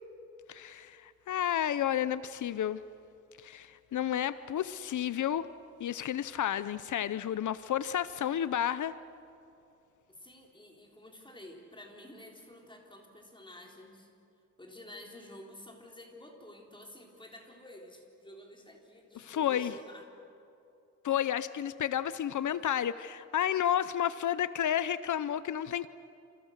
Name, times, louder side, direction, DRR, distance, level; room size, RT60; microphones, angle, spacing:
voice 1, 0.5-2.8 3.4-5.5 5.8-9.0 19.2-19.7 21.0-25.9, left 10 dB, 85° left, 15 dB, 0.6 m, -31 dB
voice 2, 10.1-14.1 14.6-20.0 21.1-21.3, left 1 dB, 15° left, 0 dB, 3.9 m, -51 dB
29.0 x 28.0 x 6.6 m, 2.6 s
wide cardioid pair, 145°, 29 cm